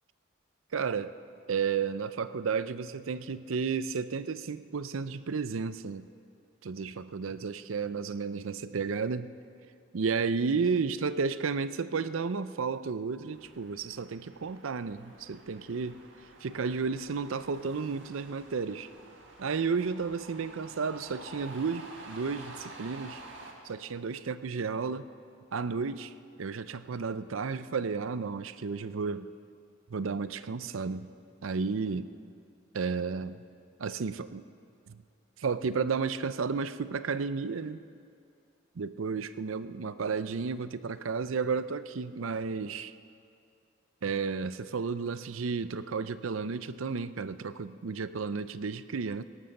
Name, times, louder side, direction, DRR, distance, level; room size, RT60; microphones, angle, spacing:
voice 1, 0.7-1.1 1.5-6.1 6.6-9.3 9.9-16.0 16.4-18.9 19.4-23.2 23.6-25.1 25.5-26.1 26.4-29.3 29.9-31.1 31.4-32.1 32.7-33.4 33.8-34.4 34.9-35.0 35.4-37.8 38.8-42.9 44.0-49.2, right 5 dB, 80° right, 14 dB, 0.5 m, -32 dB
sound 1, 13.3-23.5, right 2 dB, 60° right, 1.8 m, -50 dB
17.5 x 12.5 x 6.6 m, 2.4 s
head